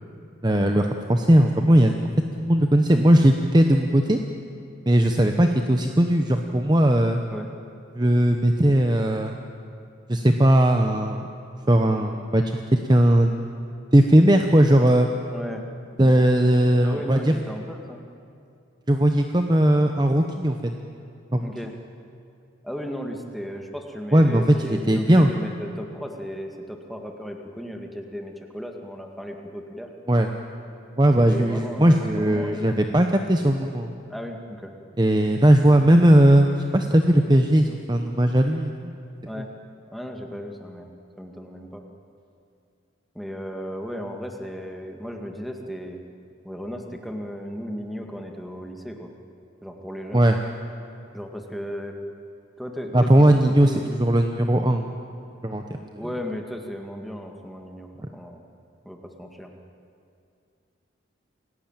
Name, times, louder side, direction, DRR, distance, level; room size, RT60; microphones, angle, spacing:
voice 1, 0.4-2.0 2.4-4.2 4.9-7.2 7.9-9.4 10.1-11.2 11.7-13.3 13.9-15.1 16.0-17.3 18.9-20.7 21.3-21.5 24.1-25.3 30.1-30.3 31.0-33.9 35.0-38.9 50.1-50.4 52.9-53.7 54.0-54.8 55.4-56.0, right 1 dB, 20° right, 5 dB, 0.9 m, -18 dB
voice 2, 15.3-15.7 16.0-16.2 16.8-18.0 21.4-21.8 22.6-29.9 31.3-32.8 34.1-34.7 39.3-39.5 39.9-40.9 41.2-41.8 43.1-46.0 46.4-49.1 49.6-50.3 51.1-52.0 52.6-53.9 55.9-58.4 58.8-59.5, equal, ahead, 2 dB, 1.9 m, -35 dB
28.0 x 17.5 x 9.0 m, 2.5 s
head